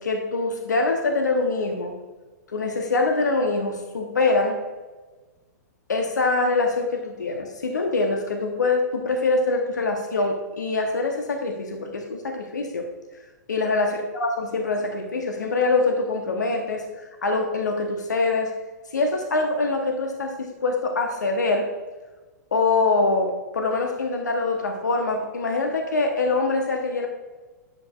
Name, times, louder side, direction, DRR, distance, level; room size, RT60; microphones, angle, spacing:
voice 1, 0.0-2.0 2.5-4.6 5.9-12.9 13.5-18.5 18.9-21.7 22.5-27.1, left 3 dB, 70° left, 3 dB, 1.0 m, -24 dB
10.5 x 7.9 x 2.5 m, 1.3 s
figure-of-eight pair, 110°, 10 cm